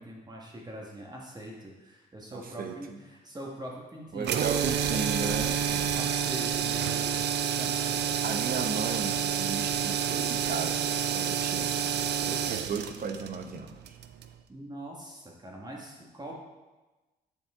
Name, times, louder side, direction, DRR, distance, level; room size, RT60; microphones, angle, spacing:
voice 1, 0.0-8.0 14.5-16.3, right 1 dB, 25° right, -2 dB, 1.6 m, -42 dB
voice 2, 2.3-2.7 4.1-5.6 8.2-13.7, right 5 dB, 55° right, 5 dB, 0.9 m, -35 dB
sound 1, 4.2-14.3, right 8 dB, 75° right, 0.5 m, -29 dB
9.2 x 4.5 x 3.7 m, 1.2 s
cardioid pair, 70°, 18 cm